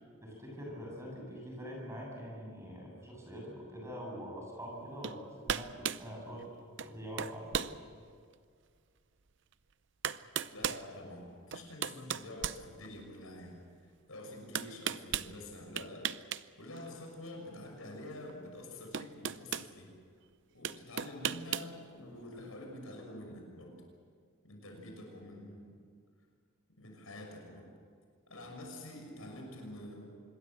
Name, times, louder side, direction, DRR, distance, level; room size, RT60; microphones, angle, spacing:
voice 1, 0.2-6.5 6.8-7.8, equal, 15° right, -2 dB, 7.6 m, -44 dB
sound 1, 5.0-5.2 5.5-6.1 6.8-6.9 7.2-7.8 8.3-8.4 9.5-9.6 10.0-10.8 11.5-13.2 14.5-15.3 15.8-16.4 16.7-16.9 18.3-18.4 18.9-19.7 20.6-21.7, right 8 dB, 55° right, 0.6 m, -35 dB
voice 2, 10.5-13.6 14.1-16.1 16.6-19.9 20.5-23.8 24.4-25.8 26.8-27.7 28.3-30.2, left 1 dB, 80° left, 2 dB, 6.3 m, -47 dB
26.0 x 21.5 x 7.7 m, 2.1 s
head